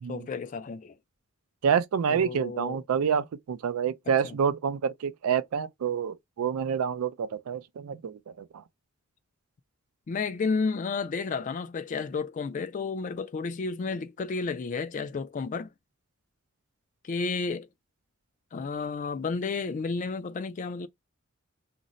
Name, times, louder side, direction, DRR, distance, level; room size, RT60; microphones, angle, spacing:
voice 1, 0.1-1.0 2.1-2.8 4.1-4.4 10.1-15.7 17.0-17.7 18.5-20.9, left 4 dB, 35° left, 0.3 m, -32 dB
voice 2, 1.6-8.6, right 7 dB, 85° right, 0.4 m, -28 dB
2.5 x 2.0 x 3.8 m
head